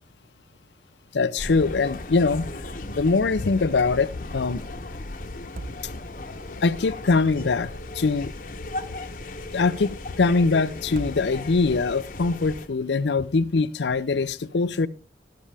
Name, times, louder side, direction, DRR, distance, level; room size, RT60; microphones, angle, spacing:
voice 1, 1.1-2.5 2.9-4.6 6.6-8.3 9.5-14.9, left 4 dB, 80° left, 0.6 m, -23 dB
sound 1, 1.4-12.7, left 2 dB, 50° left, 0.9 m, -36 dB
sound 2, 2.6-3.1 3.4-3.5 5.3-6.3 8.0-8.9 10.8-11.7, right 2 dB, 50° right, 0.6 m, -42 dB
12.5 x 12.5 x 3.4 m
head